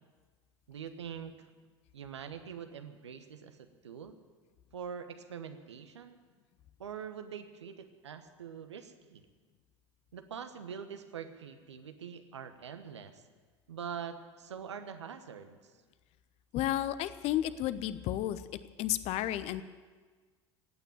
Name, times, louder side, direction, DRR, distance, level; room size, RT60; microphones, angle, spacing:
voice 1, 0.7-1.5 1.9-4.2 4.7-6.2 6.8-9.2 10.1-13.2 13.7-15.7, right 7 dB, 75° right, 8 dB, 1.2 m, -44 dB
voice 2, 16.5-18.4 18.8-19.6, left 13 dB, 45° left, 15 dB, 0.8 m, -32 dB
16.0 x 9.3 x 8.8 m, 1.5 s
figure-of-eight pair, 75°, 15 cm